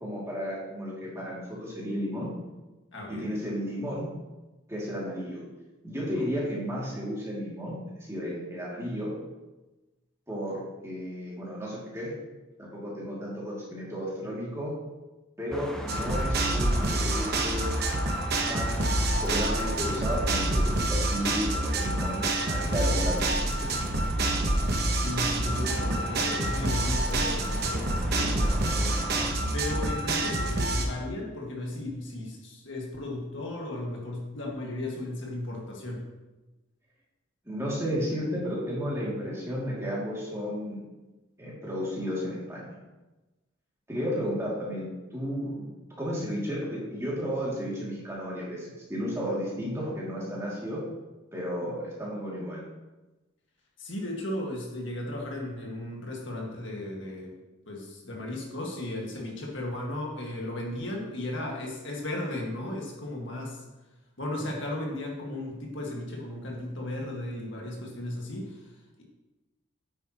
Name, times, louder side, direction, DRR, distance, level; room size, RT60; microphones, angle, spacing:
voice 1, 0.0-2.3 3.1-4.1 4.7-5.4 5.8-9.1 10.3-12.1 12.6-14.7 15.4-17.6 18.5-23.7 37.4-40.8 41.4-42.7 43.9-45.6 46.0-50.8 51.3-52.6, equal, 15° right, -6 dB, 2.4 m, -33 dB
voice 2, 2.9-3.4 25.0-36.1 53.8-57.4 57.7-63.6 64.2-69.0, left 1 dB, 60° left, -1 dB, 1.7 m, -36 dB
sound 1, 15.5-29.4, equal, 5° left, 0.6 m, -40 dB
sound 2, 15.9-30.8, right 1 dB, 50° right, 1.0 m, -27 dB
9.4 x 8.3 x 2.9 m, 1.1 s
head